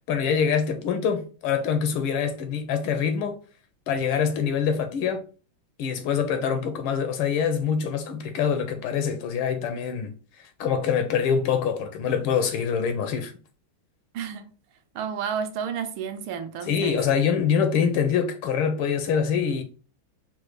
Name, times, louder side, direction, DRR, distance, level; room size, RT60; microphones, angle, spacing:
voice 1, 0.1-3.4 3.9-5.2 5.8-10.1 10.6-13.3 16.7-19.6, left 7 dB, 85° left, 1.6 m, -25 dB
voice 2, 14.1-14.5 14.9-17.0, right 7 dB, 80° right, 1.5 m, -31 dB
4.6 x 2.2 x 4.7 m
omnidirectional pair, 2.3 m